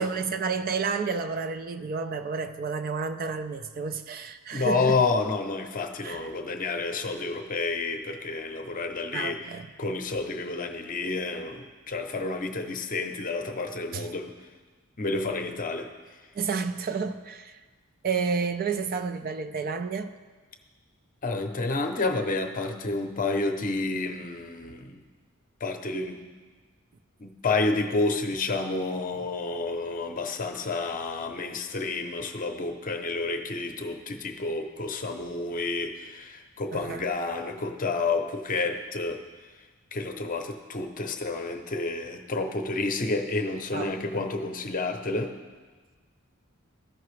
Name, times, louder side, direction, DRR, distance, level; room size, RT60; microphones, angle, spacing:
voice 1, 0.0-5.0 6.0-6.3 9.1-9.7 12.2-12.3 13.9-14.1 16.3-17.6 18.0-20.1 36.7-37.1 43.7-44.3, right 5 dB, 45° right, 10 dB, 0.4 m, -31 dB
voice 2, 4.5-9.4 9.8-14.3 15.0-15.9 21.2-25.0 25.6-26.2 27.2-39.2 39.9-45.3, left 3 dB, 40° left, 5 dB, 0.7 m, -30 dB
14.0 x 5.8 x 3.2 m, 1.4 s
head